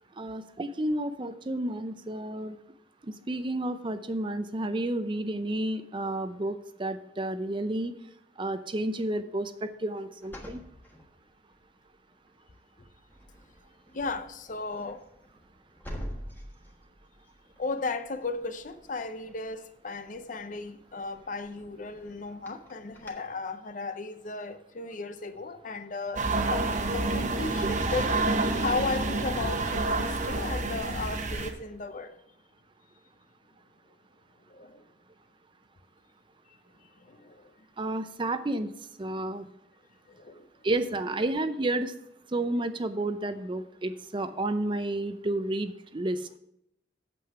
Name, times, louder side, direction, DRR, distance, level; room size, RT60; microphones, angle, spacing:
voice 1, 0.2-2.6 3.0-7.9 8.4-10.6 27.8-27.9 37.8-38.7 39.0-39.5 40.6-41.9 42.3-46.3, right 1 dB, 30° right, 0.5 m, -31 dB
sound 1, 10.2-11.8 12.3-12.6 12.8-23.1, equal, 10° left, 1.4 m, -47 dB
voice 2, 13.9-15.0 17.6-32.1 34.5-34.8 37.0-37.5 40.1-40.5, left 3 dB, 45° left, 0.7 m, -35 dB
sound 2, 26.2-31.5, right 2 dB, 45° right, 1.0 m, -28 dB
8.5 x 7.7 x 4.8 m
head